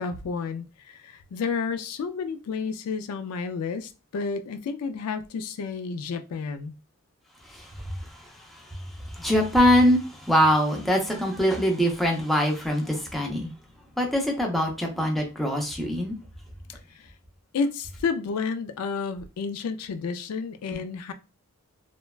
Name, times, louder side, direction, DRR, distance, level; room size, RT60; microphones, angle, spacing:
voice 1, 0.0-6.7 16.9-17.1 17.5-21.1, left 5 dB, 85° left, 0.3 m, -31 dB
voice 2, 7.4-13.5 14.0-16.1 20.7-20.8, equal, ahead, 0.5 m, -24 dB
3.1 x 2.1 x 2.3 m
head